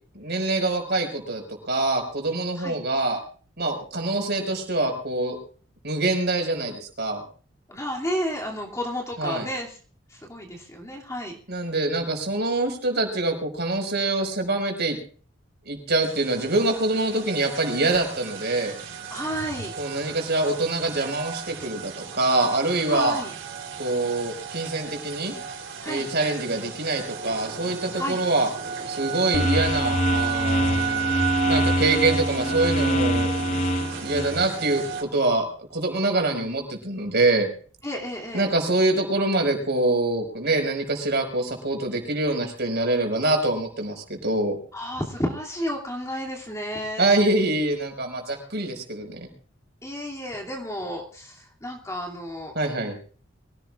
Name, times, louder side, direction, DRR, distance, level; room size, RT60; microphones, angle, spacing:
voice 1, 0.1-3.2 3.6-5.4 5.8-7.2 9.2-9.5 11.5-15.0 15.7-18.7 19.8-23.2 23.8-25.3 25.9-28.5 28.9-33.3 34.0-37.5 38.3-44.6 47.0-49.3 52.6-53.0, right 2 dB, 60° right, 3 dB, 5.4 m, -25 dB
voice 2, 7.7-9.8 10.1-11.4 19.1-19.7 22.9-23.3 25.8-26.1 27.9-28.2 37.8-38.5 44.7-47.1 49.8-52.5, equal, 15° left, -1 dB, 2.8 m, -31 dB
sound 1, 16.0-35.0, right 6 dB, 80° right, 3.7 m, -34 dB
sound 2, 29.3-34.4, equal, 35° left, 1.0 m, -24 dB
24.0 x 17.0 x 2.5 m, 0.42 s
head